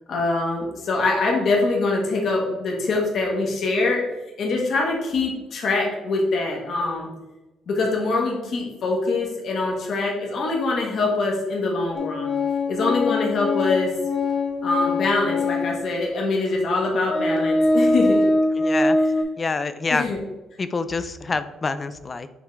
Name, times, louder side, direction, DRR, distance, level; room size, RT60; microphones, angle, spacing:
voice 1, 0.1-4.0 4.4-7.1 7.7-12.3 12.7-13.9 14.6-18.2 19.9-20.2, left 3 dB, 45° left, -1 dB, 1.2 m, -24 dB
Organ, 11.9-15.9 16.5-16.6 17.0-19.2, left 2 dB, 75° left, 1.1 m, -22 dB
voice 2, 18.5-19.0 19.4-20.1 20.6-22.3, left 4 dB, 20° left, 12 dB, 0.3 m, -26 dB
9.1 x 3.6 x 3.2 m, 1.0 s
cardioid pair, 180°, 0 cm